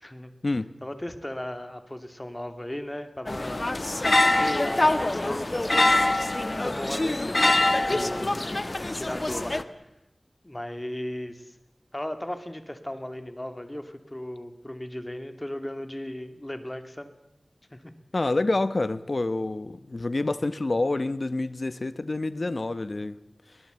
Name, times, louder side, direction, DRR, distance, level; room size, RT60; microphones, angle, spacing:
voice 1, 0.0-0.3 0.8-3.7 4.2-6.0 6.6-8.4 8.9-9.6 10.4-11.6 11.9-17.1 17.7-17.9 18.2-18.3, left 1 dB, 20° left, 2.6 m, -36 dB
sound 1, 3.3-9.6, left 2 dB, 45° left, 1.3 m, -24 dB
voice 2, 18.1-23.2, left 2 dB, 60° left, 1.1 m, -27 dB
23.5 x 19.0 x 8.2 m
wide cardioid pair, 50°, 0 cm